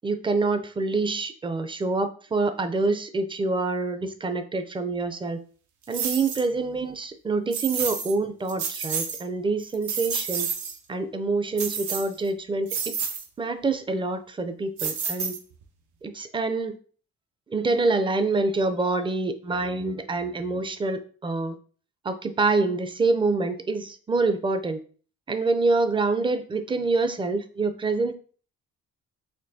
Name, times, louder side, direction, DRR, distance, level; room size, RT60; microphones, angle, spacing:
voice 1, 0.0-5.4 5.9-10.5 10.9-13.0 13.4-15.4 16.0-16.8 17.5-21.6 22.0-24.8 25.3-28.1, right 3 dB, 15° right, 9 dB, 0.4 m, -26 dB
sound 1, 5.9-6.4 7.5-8.1 8.5-9.2 9.6-10.8 11.6-12.3 12.7-13.2 14.8-15.6, right 6 dB, 75° right, 0.8 m, -30 dB
4.3 x 2.6 x 2.7 m, 0.42 s
cardioid pair, 90°, 30 cm